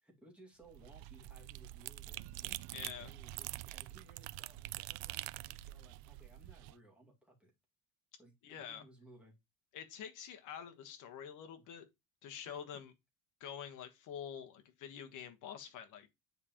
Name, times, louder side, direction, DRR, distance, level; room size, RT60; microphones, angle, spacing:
voice 1, 0.0-7.5 8.2-9.4 12.3-12.8, right 1 dB, 5° right, 2.1 m, -61 dB
sound 1, 0.6-6.7, right 18 dB, 80° right, 0.5 m, -46 dB
voice 2, 2.7-3.1 8.4-8.8 9.7-11.8 12.2-12.9 13.4-16.1, left 8 dB, 55° left, 1.3 m, -47 dB
9.7 x 4.9 x 3.0 m
cardioid pair, 160°, 36 cm